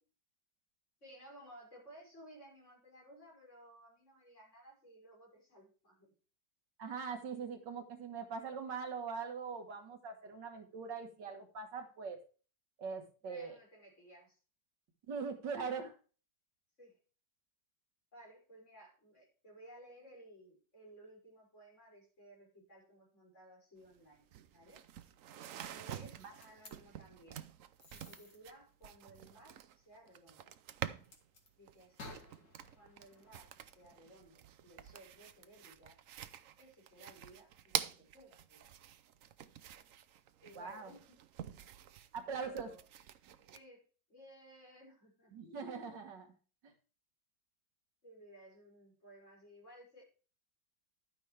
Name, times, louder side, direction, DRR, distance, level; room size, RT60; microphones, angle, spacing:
voice 1, 1.0-6.1 7.3-7.6 13.2-14.4 16.8-17.0 18.1-24.2 24.5-24.9 25.7-27.4 27.9-30.5 31.6-32.1 32.7-36.0 36.6-38.8 40.4-41.2 42.2-42.9 43.4-45.5 48.0-50.0, right 1 dB, 40° left, -3 dB, 6.2 m, -58 dB
voice 2, 6.8-12.2 12.8-13.6 15.1-15.9 40.6-40.9 42.1-42.7 45.3-46.3, right 5 dB, 85° right, 6 dB, 2.1 m, -42 dB
sound 1, 23.8-23.9 24.1-31.3 31.7-43.6, right 10 dB, 60° right, 0.9 m, -47 dB
sound 2, 26.4-26.7 27.8-28.4 31.0-31.5 32.0-34.2, left 2 dB, 85° left, 3.2 m, -55 dB
12.0 x 9.5 x 3.3 m, 0.37 s
omnidirectional pair, 1.9 m